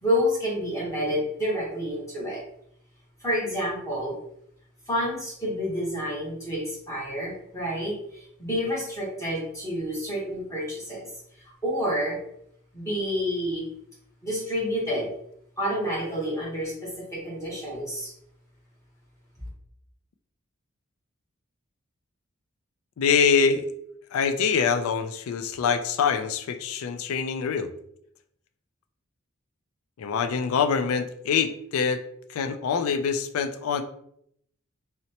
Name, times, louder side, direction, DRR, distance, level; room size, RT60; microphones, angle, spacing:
voice 1, 0.0-2.4 3.2-4.1 4.9-11.1 11.6-12.2 12.7-13.7 14.2-15.1 15.6-18.1, equal, 15° left, -6 dB, 1.1 m, -29 dB
voice 2, 23.0-23.7 24.1-27.7 30.0-32.0 32.3-33.8, left 6 dB, 85° left, 10 dB, 0.3 m, -24 dB
4.0 x 2.1 x 2.8 m, 0.70 s
head